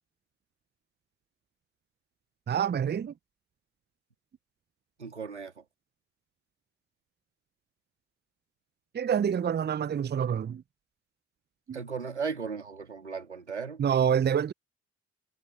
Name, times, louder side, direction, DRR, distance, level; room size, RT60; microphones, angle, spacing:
voice 1, 2.5-3.1 8.9-10.6 11.7-11.8 13.8-14.5, right 8 dB, 30° right, 0.9 m, -27 dB
voice 2, 5.0-5.6 11.7-13.8, right 5 dB, 85° right, 3.0 m, -36 dB
figure-of-eight pair, 45°, 33 cm